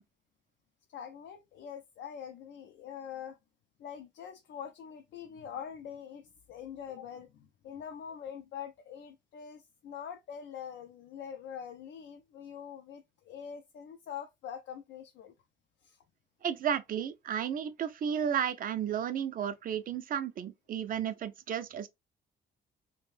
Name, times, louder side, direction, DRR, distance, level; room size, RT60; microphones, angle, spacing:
voice 1, 0.9-3.4 3.8-15.3 15.8-16.0, left 8 dB, 70° left, 0.4 m, -44 dB
voice 2, 16.4-21.9, right 8 dB, 45° right, 0.4 m, -33 dB
2.5 x 2.1 x 3.1 m
cardioid pair, 100°, 19 cm